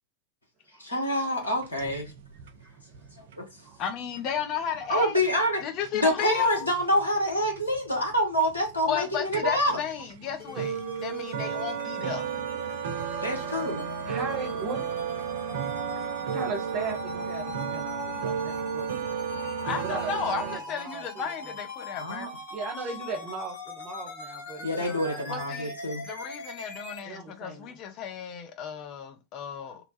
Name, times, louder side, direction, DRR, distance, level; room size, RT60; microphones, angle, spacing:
voice 1, 0.8-2.1 3.4-3.5 4.9-5.6 5.9-9.8 13.2-13.9 22.0-22.3 24.6-26.0 29.7-29.8, equal, 80° left, 1.2 m, -26 dB
sound 1, 1.4-20.6, right 7 dB, 60° right, 0.4 m, -34 dB
voice 2, 3.8-5.1 5.6-6.6 8.9-10.7 11.0-12.3 19.6-22.3 25.3-25.7 26.1-29.8, left 7 dB, 35° left, 0.5 m, -33 dB
sound 2, 10.4-27.0, left 2 dB, 55° left, 1.1 m, -41 dB
voice 3, 13.2-14.8 16.3-18.9 19.8-21.6 22.5-25.3 27.0-27.8, right 4 dB, 35° right, 0.8 m, -38 dB
2.8 x 2.3 x 4.0 m
figure-of-eight pair, 90°, 0 cm